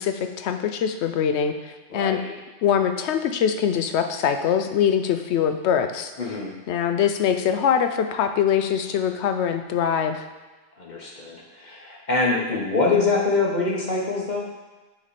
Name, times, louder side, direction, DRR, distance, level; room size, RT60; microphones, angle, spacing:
voice 1, 0.0-2.2 2.6-6.1 6.7-10.3, left 8 dB, 70° left, 7 dB, 0.8 m, -23 dB
voice 2, 1.9-2.3 6.2-6.5 10.8-14.5, left 3 dB, 40° left, -3 dB, 1.1 m, -24 dB
9.0 x 3.2 x 4.1 m, 1.2 s
omnidirectional pair, 1.3 m